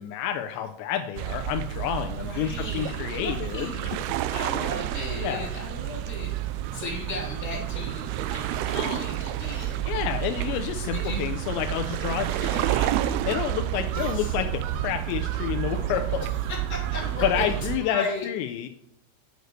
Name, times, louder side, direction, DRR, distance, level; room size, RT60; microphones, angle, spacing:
voice 1, 0.0-3.7 5.2-5.5 9.9-16.3 17.2-18.7, left 10 dB, 90° left, 6 dB, 2.5 m, -29 dB
sound 1, 1.2-17.8, right 13 dB, 85° right, 3.0 m, -30 dB
voice 2, 2.2-4.0 4.3-9.8 10.8-11.3 12.4-12.7 13.9-14.4 16.7-17.4 17.7-18.3, left 2 dB, 20° left, -4 dB, 3.2 m, -36 dB
9.3 x 6.6 x 6.5 m, 0.78 s
omnidirectional pair, 5.8 m